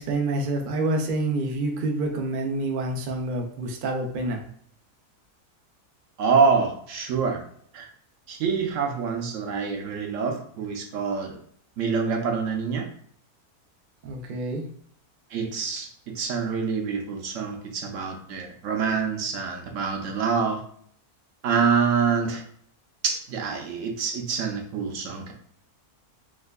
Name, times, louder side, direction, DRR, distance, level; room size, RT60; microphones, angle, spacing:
voice 1, 0.0-4.4 14.0-14.6, right 2 dB, 80° right, 2 dB, 0.4 m, -27 dB
voice 2, 6.2-7.4 7.7-7.9 8.3-11.4 11.8-12.9 15.3-20.6 21.4-22.4 23.0-25.3, right 5 dB, 65° right, 3 dB, 0.9 m, -26 dB
3.5 x 3.2 x 2.2 m, 0.62 s
omnidirectional pair, 1.6 m